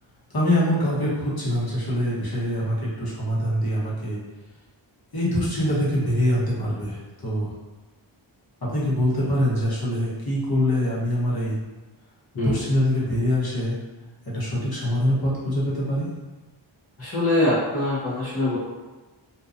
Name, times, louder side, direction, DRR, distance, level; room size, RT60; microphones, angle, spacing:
voice 1, 0.3-4.2 5.1-7.5 8.7-11.5 12.3-13.8 14.3-16.1, left 1 dB, 50° left, -8 dB, 1.0 m, -24 dB
voice 2, 17.0-18.6, left 1 dB, 30° left, -8 dB, 0.6 m, -23 dB
2.7 x 2.2 x 2.4 m, 1.2 s
wide cardioid pair, 60°, 49 cm